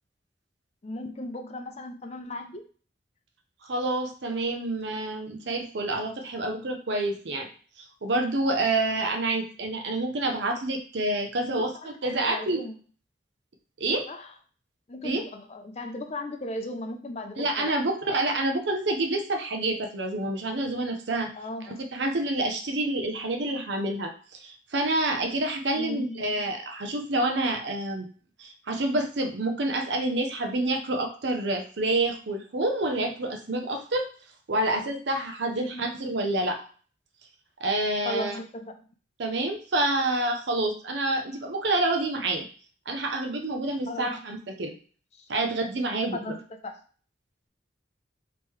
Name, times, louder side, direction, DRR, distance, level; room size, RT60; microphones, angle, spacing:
voice 1, 0.8-2.6 11.5-11.9 12.2-12.7 14.1-14.3 14.9-17.7 21.4-21.8 25.7-26.6 35.5-36.1 38.0-38.8 43.9-44.2 45.1-45.2 46.2-46.4 46.6-46.7, left 1 dB, 35° left, 5 dB, 0.4 m, -37 dB
voice 2, 3.6-7.5 7.8-12.6 13.8-14.1 15.0-15.2 17.4-21.3 21.7-24.1 24.4-28.1 28.4-34.1 34.5-36.6 37.6-38.4 39.2-42.4 42.9-44.7 45.3-46.4, right 2 dB, 70° right, 4 dB, 0.6 m, -28 dB
3.6 x 3.0 x 3.1 m, 0.41 s
head